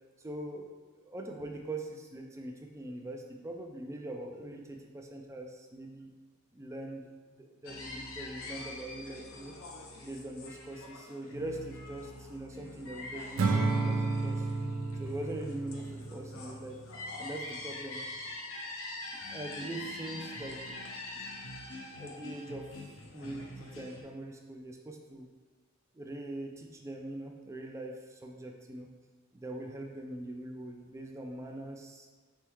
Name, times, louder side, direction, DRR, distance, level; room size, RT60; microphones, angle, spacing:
voice 1, 0.2-6.1 6.5-9.5 10.0-14.5 15.0-16.8 17.2-18.1 19.3-20.6 22.0-22.7 23.1-25.3 25.9-28.9 29.3-32.1, right 1 dB, 15° right, 2 dB, 0.4 m, -42 dB
sound 1, 7.6-24.0, left 2 dB, 80° left, 0.7 m, -44 dB
Acoustic guitar / Strum, 13.4-16.7, right 3 dB, 75° right, 0.4 m, -31 dB
4.2 x 3.5 x 3.0 m, 1.4 s
head